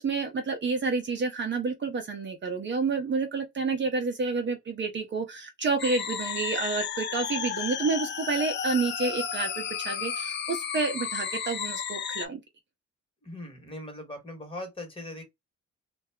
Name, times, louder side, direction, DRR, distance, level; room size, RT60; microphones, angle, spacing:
voice 1, 0.0-12.4, right 4 dB, 40° right, 0.6 m, -29 dB
sound 1, 5.8-12.3, left 8 dB, 40° left, 0.4 m, -33 dB
voice 2, 13.2-15.2, left 1 dB, 20° left, 1.3 m, -40 dB
2.3 x 2.0 x 3.4 m
cardioid pair, 90°, 30 cm